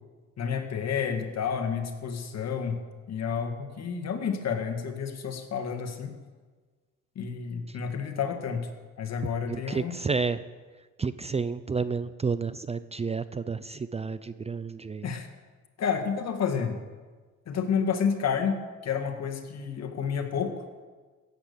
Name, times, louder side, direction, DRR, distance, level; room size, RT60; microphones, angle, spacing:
voice 1, 0.4-2.8 3.1-6.1 7.2-8.7 9.0-9.9 15.0-15.3 15.8-16.8 17.5-18.6 18.8-20.5, left 6 dB, 60° left, 6 dB, 1.9 m, -30 dB
voice 2, 9.5-10.4 11.0-15.1, right 4 dB, 20° right, 14 dB, 0.5 m, -30 dB
16.0 x 8.3 x 6.9 m, 1.4 s
cardioid pair, 90°, 30 cm